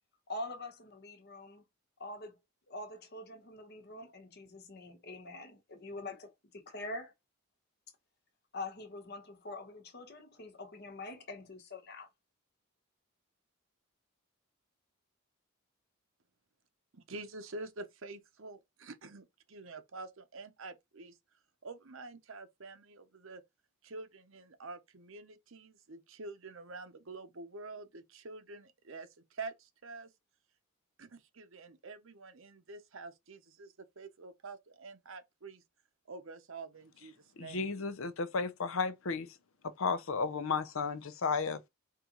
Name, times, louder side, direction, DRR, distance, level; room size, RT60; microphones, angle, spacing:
voice 1, 0.3-1.6 2.0-2.4 2.7-7.1 8.5-12.1, left 2 dB, 45° left, 1.0 m, -45 dB
voice 2, 16.9-21.2 21.6-23.4 23.8-30.1 31.0-35.6 36.1-37.7, right 3 dB, 65° right, 0.8 m, -47 dB
voice 3, 37.4-39.3 39.6-41.7, left 4 dB, 70° left, 0.6 m, -33 dB
4.7 x 3.0 x 3.8 m
head